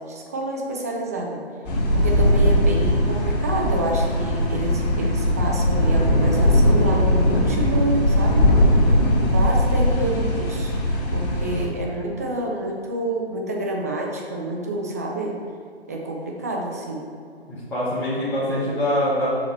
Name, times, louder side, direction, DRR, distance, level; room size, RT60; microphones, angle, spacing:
voice 1, 0.1-1.4 1.9-8.5 9.3-10.8 11.1-15.4 15.9-17.0, right 1 dB, 15° right, 0 dB, 0.4 m, -28 dB
sound 1, 1.6-11.6, left 1 dB, 40° left, 1.7 m, -19 dB
voice 2, 8.9-9.4 17.5-19.3, left 1 dB, 5° left, -13 dB, 1.2 m, -25 dB
6.5 x 5.8 x 4.3 m, 2.4 s
figure-of-eight pair, 145°, 32 cm